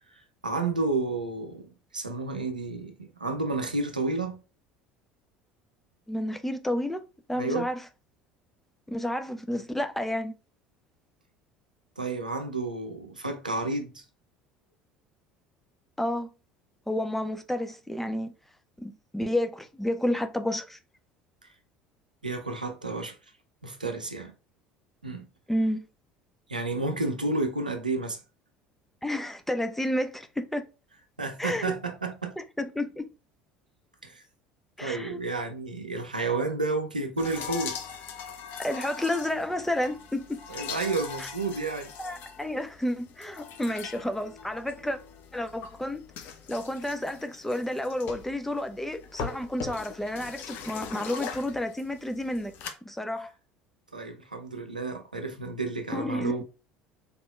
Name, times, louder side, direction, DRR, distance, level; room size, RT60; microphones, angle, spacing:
voice 1, 0.1-4.4 7.3-7.7 12.0-14.0 22.2-23.2 23.6-24.3 25.0-25.3 26.5-28.2 31.2-32.4 34.0-34.2 34.8-37.8 40.5-41.9 53.9-56.4, right 3 dB, 85° right, 0.5 m, -31 dB
voice 2, 6.1-7.0 7.3-7.8 8.9-10.3 16.0-16.3 16.9-18.3 18.8-20.8 25.5-25.8 29.0-30.7 31.4-31.7 32.4-33.1 34.8-35.2 38.6-40.4 41.2-41.3 42.0-45.0 45.3-46.0 46.5-52.5 52.8-53.3 55.9-56.4, left 1 dB, 5° left, 0.5 m, -30 dB
sound 1, 37.2-52.7, left 6 dB, 50° left, 0.7 m, -41 dB
4.2 x 3.4 x 2.3 m
figure-of-eight pair, 65°, 4 cm